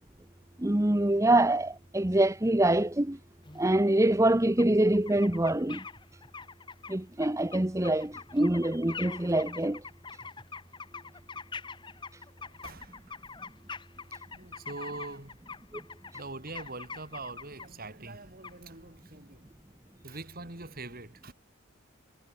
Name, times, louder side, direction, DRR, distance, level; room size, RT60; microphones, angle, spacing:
voice 1, 0.6-3.2 3.5-5.8 6.9-9.8 15.7-15.8, right 1 dB, 15° right, 0.8 m, -25 dB
sound 1, 3.4-4.0 4.6-4.7 4.9-17.7 18.4-18.6, left 5 dB, 20° left, 1.3 m, -44 dB
voice 2, 12.3-13.2 14.3-15.4 16.1-19.5 20.0-21.3, right 2 dB, 45° right, 3.4 m, -43 dB
head